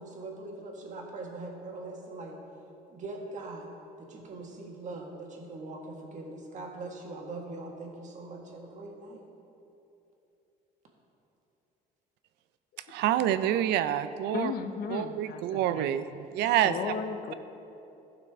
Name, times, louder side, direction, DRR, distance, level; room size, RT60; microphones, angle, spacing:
voice 1, 0.0-2.4 2.9-3.7 4.0-9.3, right 2 dB, 45° right, 0 dB, 1.6 m, -41 dB
voice 2, 12.9-14.5 14.9-16.0 16.3-16.7, right 11 dB, 80° right, 12 dB, 0.5 m, -27 dB
voice 3, 14.3-16.0 16.6-17.3, left 6 dB, 60° left, 8 dB, 0.7 m, -35 dB
15.0 x 5.9 x 3.5 m, 2.9 s
cardioid pair, 110°, 17 cm